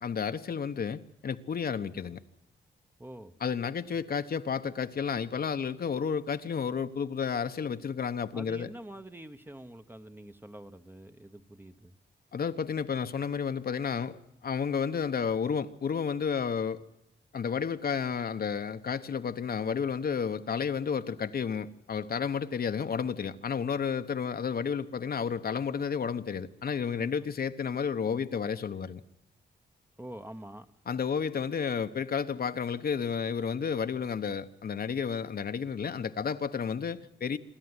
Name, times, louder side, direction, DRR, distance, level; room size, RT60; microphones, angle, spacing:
voice 1, 0.0-2.2 3.4-8.7 12.3-16.8 17.3-29.0 30.9-37.4, left 6 dB, 50° left, 9 dB, 1.0 m, -31 dB
voice 2, 3.0-3.4 8.3-12.0 27.0-27.3 30.0-30.7, right 1 dB, 10° right, 9 dB, 1.0 m, -46 dB
26.0 x 12.5 x 9.7 m, 0.83 s
wide cardioid pair, 120°, 19 cm